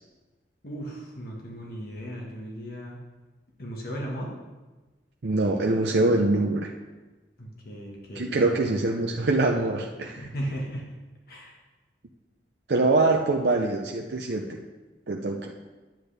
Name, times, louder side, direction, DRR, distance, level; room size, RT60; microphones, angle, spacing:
voice 1, 0.6-3.0 3.6-4.3 7.4-8.3 10.2-10.8 11.3-11.6, equal, 55° left, -2 dB, 1.5 m, -36 dB
voice 2, 5.2-6.7 8.2-10.3 12.7-14.6 15.1-15.5, right 2 dB, 65° right, 1 dB, 0.6 m, -24 dB
10.5 x 8.2 x 3.4 m, 1.2 s
head